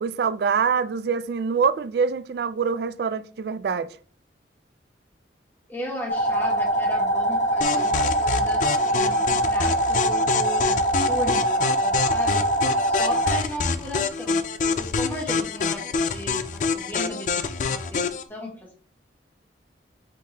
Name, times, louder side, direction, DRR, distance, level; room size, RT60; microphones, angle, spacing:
voice 1, 0.0-4.0, right 6 dB, 60° right, 0.3 m, -25 dB
voice 2, 5.7-12.5 12.9-14.4 14.6-18.8, equal, 10° left, 1.3 m, -35 dB
sound 1, 6.1-13.4, right 1 dB, 80° left, 1.3 m, -23 dB
sound 2, 7.6-18.2, left 5 dB, 45° left, 0.3 m, -27 dB
5.0 x 3.7 x 2.8 m
head